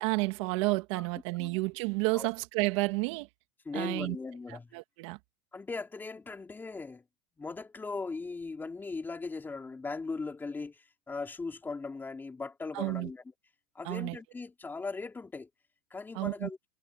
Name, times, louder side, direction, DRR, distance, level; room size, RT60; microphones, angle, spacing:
voice 1, 0.0-3.3 3.7-4.2 4.5-5.2 12.7-13.1 13.8-14.2 16.1-16.5, right 25 dB, 60° right, 2.5 m, -31 dB
voice 2, 3.7-4.7 5.5-7.0 7.4-13.2 13.8-15.5 15.9-16.6, left 4 dB, 10° left, 3.6 m, -39 dB
supercardioid pair, 150°, 18 cm